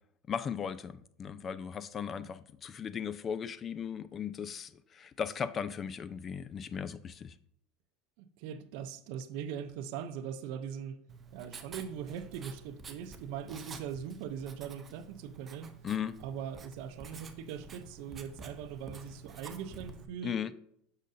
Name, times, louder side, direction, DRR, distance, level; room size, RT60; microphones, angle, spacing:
voice 1, 0.3-7.3 15.8-16.1 20.2-20.5, left 7 dB, 30° left, 0.3 m, -37 dB
voice 2, 8.2-11.0 11.3-15.7 16.2-20.4, right 8 dB, 70° right, 0.6 m, -41 dB
Writing, 11.1-20.0, right 4 dB, 25° right, 0.7 m, -50 dB
6.5 x 6.4 x 2.6 m
supercardioid pair, 120°, 0 cm